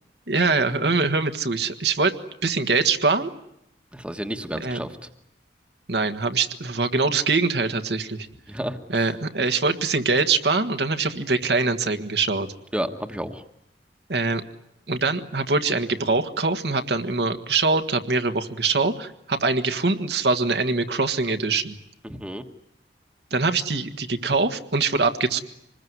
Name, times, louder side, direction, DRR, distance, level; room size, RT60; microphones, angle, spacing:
voice 1, 0.3-2.1 2.4-3.3 4.6-4.8 5.9-8.3 8.9-12.5 14.1-14.4 14.9-21.8 23.3-25.4, right 3 dB, 75° right, 7 dB, 1.7 m, -23 dB
voice 2, 3.9-5.0 8.5-9.1 12.7-13.4 22.0-22.4, equal, 5° right, 6 dB, 1.3 m, -31 dB
26.0 x 20.5 x 9.6 m, 0.82 s
head